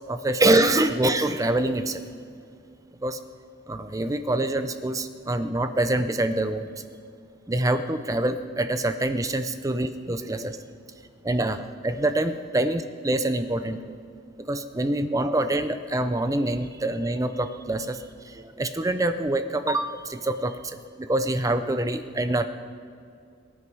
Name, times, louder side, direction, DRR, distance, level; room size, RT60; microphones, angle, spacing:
voice 1, 0.1-2.0 3.0-3.2 3.7-6.7 7.5-10.6 11.2-13.9 14.5-18.0 18.6-20.5 21.0-22.5, right 1 dB, 15° right, 10 dB, 0.5 m, -25 dB
23.0 x 10.0 x 4.6 m, 2.4 s
head